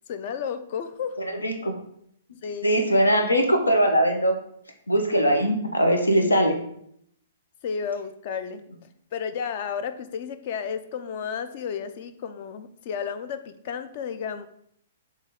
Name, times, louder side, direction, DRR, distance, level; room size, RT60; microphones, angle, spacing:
voice 1, 0.1-1.2 2.4-2.7 7.6-8.6 9.1-14.5, left 7 dB, 45° left, 11 dB, 0.6 m, -32 dB
voice 2, 1.4-1.7 2.6-4.3 4.9-6.6, equal, 80° left, 4 dB, 1.1 m, -21 dB
7.3 x 3.4 x 3.8 m, 0.70 s
figure-of-eight pair, 115°, 0 cm